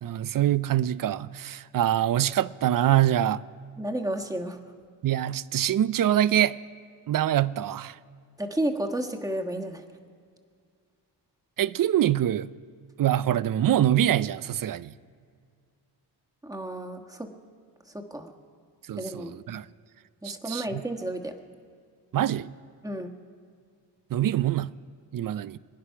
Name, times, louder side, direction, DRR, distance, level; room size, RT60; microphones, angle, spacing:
voice 1, 0.0-3.4 5.0-6.5 7.1-8.0 11.6-12.5 13.0-14.9 18.9-19.7 20.2-20.8 22.1-22.5 24.1-24.7 25.1-25.6, right 11 dB, 50° right, 0.5 m, -24 dB
voice 2, 3.8-4.6 8.4-9.8 16.4-17.3 17.9-18.3 19.0-19.3 20.2-21.4 22.8-23.1, right 1 dB, 10° right, 1.4 m, -32 dB
25.0 x 10.0 x 5.7 m
cardioid pair, 100°, 43 cm